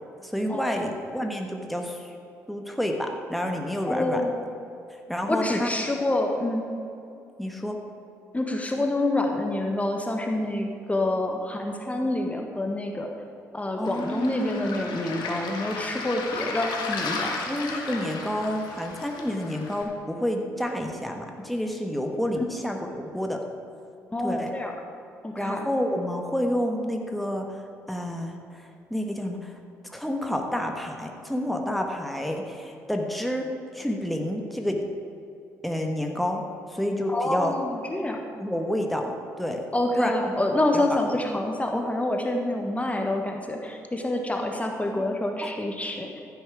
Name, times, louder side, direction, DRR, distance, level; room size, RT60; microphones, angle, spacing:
voice 1, 0.2-2.1 2.5-4.3 5.1-5.7 7.4-7.8 13.8-14.9 17.4-23.5 24.2-24.6 25.3-29.5 29.8-34.9 35.6-37.6 38.4-39.7 40.0-40.3 40.7-41.0 44.9-45.0 45.4-45.5, equal, ahead, 3 dB, 1.5 m, -29 dB
voice 2, 3.9-4.5 5.3-6.6 8.3-13.1 13.5-17.4 22.4-22.5 24.1-24.7 25.2-25.6 37.1-38.2 39.7-46.2, left 1 dB, 15° left, 3 dB, 1.5 m, -27 dB
Waves surf, 13.8-19.8, left 3 dB, 60° left, 1.8 m, -34 dB
14.5 x 8.1 x 5.0 m, 2.6 s
figure-of-eight pair, 45°, 8 cm